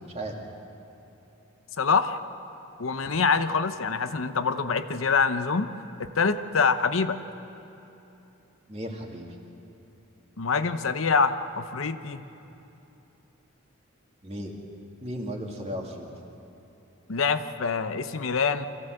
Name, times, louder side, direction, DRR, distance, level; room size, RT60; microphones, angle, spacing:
voice 1, 1.8-2.2 2.8-5.7 6.0-7.2 10.4-12.3 17.1-18.7, left 5 dB, 70° left, 10 dB, 0.8 m, -25 dB
voice 2, 8.7-9.3 14.2-14.5 15.0-16.1, equal, 30° right, 0 dB, 2.4 m, -35 dB
24.5 x 16.0 x 7.8 m, 2.9 s
head